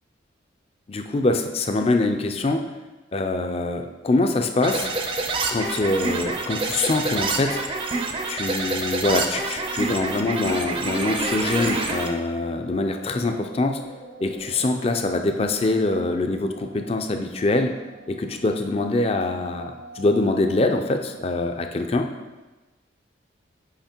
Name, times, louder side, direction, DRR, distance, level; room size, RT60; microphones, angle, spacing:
voice 1, 0.9-2.6 3.1-4.9 5.5-7.6 8.3-13.8 14.2-17.7 18.1-22.1, left 2 dB, 30° left, 5 dB, 0.4 m, -24 dB
sound 1, 4.6-12.1, right 3 dB, 25° right, 0.5 m, -27 dB
sound 2, 5.1-21.7, right 1 dB, 80° right, 1.7 m, -45 dB
5.8 x 5.2 x 4.4 m, 1.2 s
head